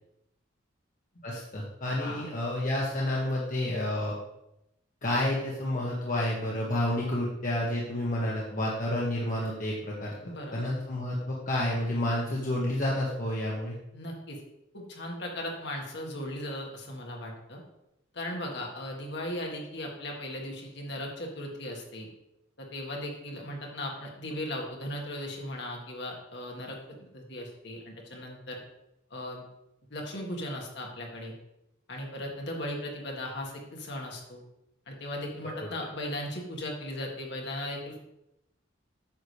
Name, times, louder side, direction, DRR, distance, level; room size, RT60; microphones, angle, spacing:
voice 1, 1.2-4.1 5.0-10.1 10.5-13.7 35.6-35.7, left 1 dB, 40° left, -4 dB, 1.2 m, -30 dB
voice 2, 2.0-2.3 10.3-10.6 13.9-14.4 14.7-17.6 18.1-22.1 22.6-28.6 29.1-29.5 29.9-31.3 31.9-34.4 34.9-38.0, left 1 dB, 60° left, 0 dB, 1.8 m, -37 dB
8.8 x 6.8 x 3.4 m, 0.85 s
head